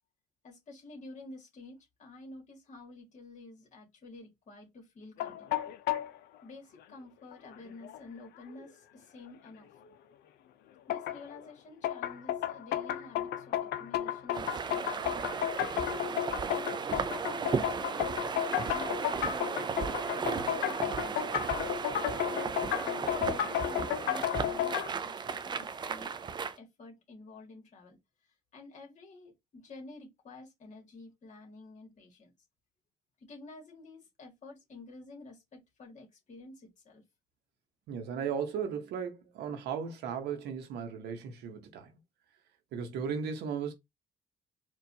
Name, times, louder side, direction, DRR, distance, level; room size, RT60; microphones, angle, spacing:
voice 1, 0.4-5.6 6.4-9.7 10.9-15.3 16.4-19.8 20.1-21.5 22.2-26.1 26.6-32.3 33.2-37.0, left 2 dB, 45° left, 1.9 m, -50 dB
sound 1, 5.2-6.1 7.3-7.4 7.8-8.0 8.6-8.7 10.9-11.4 11.8-24.9, left 12 dB, 75° left, 0.6 m, -33 dB
sound 2, 14.3-26.6, right 6 dB, 25° right, 0.4 m, -35 dB
voice 2, 37.9-41.9 42.7-43.7, right 7 dB, 80° right, 1.0 m, -36 dB
4.5 x 2.4 x 2.8 m
cardioid pair, 110°, 17 cm